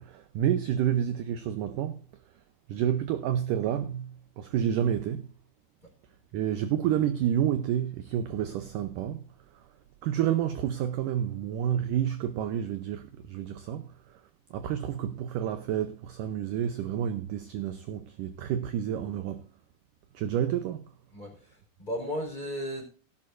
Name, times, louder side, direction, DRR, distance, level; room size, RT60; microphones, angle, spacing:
voice 1, 0.0-2.0 2.7-5.3 6.3-9.2 9.5-9.7 10.0-14.2 14.5-19.5 20.1-20.8, right 10 dB, 75° right, 2.1 m, -29 dB
voice 2, 21.1-22.8, equal, 10° left, 4.3 m, -35 dB
17.0 x 11.0 x 2.6 m
omnidirectional pair, 4.6 m